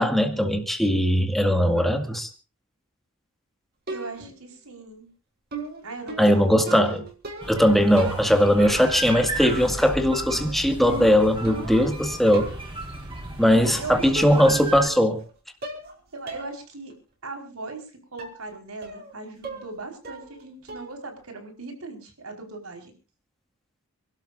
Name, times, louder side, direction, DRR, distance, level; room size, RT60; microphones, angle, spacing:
voice 1, 0.0-2.3 6.2-7.0 7.5-12.5 13.4-15.2, equal, ahead, 5 dB, 2.0 m, -20 dB
sound 1, 3.9-4.4 5.5-7.7 8.0-8.6 9.5-9.9 10.2-12.0 12.3-12.7 13.6-13.7 14.2-14.6 14.9-15.3 15.6-15.9 16.3-16.5 16.9-17.0 18.2-18.4 18.8-19.1 19.4-19.8 20.0-20.4 20.7-21.0, right 2 dB, 50° right, 5.6 m, -37 dB
voice 2, 3.9-5.1 5.8-6.8 8.5-8.6 13.4-14.8 16.1-16.9 17.2-17.8 18.1-22.9, right 3 dB, 85° right, 4 dB, 4.8 m, -38 dB
sound 2, 7.4-14.9, right 2 dB, 25° right, 4.4 m, -35 dB
29.0 x 12.5 x 2.6 m, 0.33 s
head